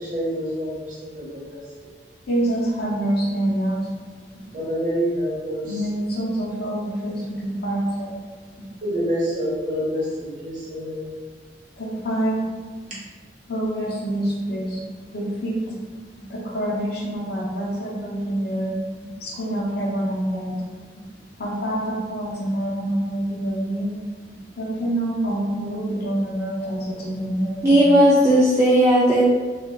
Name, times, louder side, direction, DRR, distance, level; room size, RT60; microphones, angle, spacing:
voice 1, 0.0-1.9 4.5-5.9 8.8-11.1, equal, 45° right, -7 dB, 1.0 m, -27 dB
voice 2, 2.3-3.9 5.6-8.1 11.8-12.4 13.5-14.8 15.1-15.8 16.3-18.8 19.2-20.5 21.4-23.9 24.6-27.9, right 1 dB, 60° left, -3 dB, 0.7 m, -26 dB
voice 3, 27.6-29.2, equal, 15° right, -7 dB, 0.3 m, -15 dB
3.2 x 2.4 x 2.3 m, 1.4 s
head